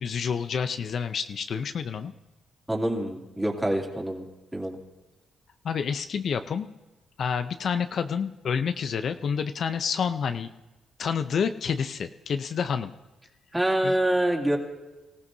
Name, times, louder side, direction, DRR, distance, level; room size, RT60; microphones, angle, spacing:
voice 1, 0.0-2.1 5.6-6.7 7.2-10.5 11.0-12.9 13.8-14.0, left 6 dB, 60° left, 9 dB, 0.6 m, -28 dB
voice 2, 2.7-4.2 4.5-4.8 13.5-14.6, right 1 dB, 10° right, 0 dB, 2.8 m, -26 dB
25.0 x 15.5 x 2.7 m, 1.1 s
cardioid pair, 70°, 0 cm